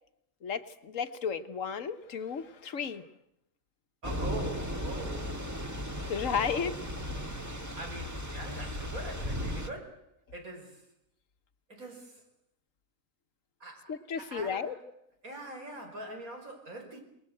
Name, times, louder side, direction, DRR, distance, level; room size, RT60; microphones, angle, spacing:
voice 1, 0.4-3.0 6.1-6.7 13.9-14.8, left 6 dB, 65° left, 10 dB, 1.5 m, -33 dB
Thunder / Rain, 4.0-9.7, equal, 10° right, 1.6 m, -36 dB
voice 2, 4.0-5.3 6.5-6.7 7.8-10.1 10.3-10.9 11.7-12.2 13.6-14.8 15.2-17.0, right 1 dB, 80° right, 2 dB, 5.8 m, -43 dB
27.5 x 20.5 x 7.8 m, 0.80 s
omnidirectional pair, 1.5 m